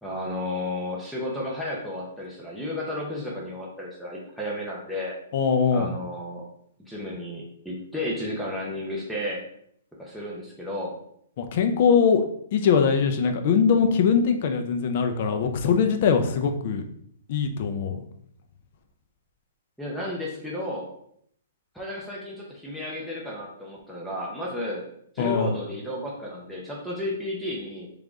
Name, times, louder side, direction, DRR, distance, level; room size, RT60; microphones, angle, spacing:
voice 1, 0.0-5.2 5.7-6.4 6.9-9.4 10.0-10.9 19.8-20.9 21.7-24.9 25.1-27.9, left 1 dB, ahead, -5 dB, 0.7 m, -33 dB
voice 2, 5.3-5.9 11.4-12.2 12.5-16.8 17.3-18.0 25.2-25.5, left 6 dB, 45° left, 6 dB, 0.5 m, -22 dB
3.7 x 3.4 x 3.5 m, 0.68 s
hypercardioid pair, 165°, 0 cm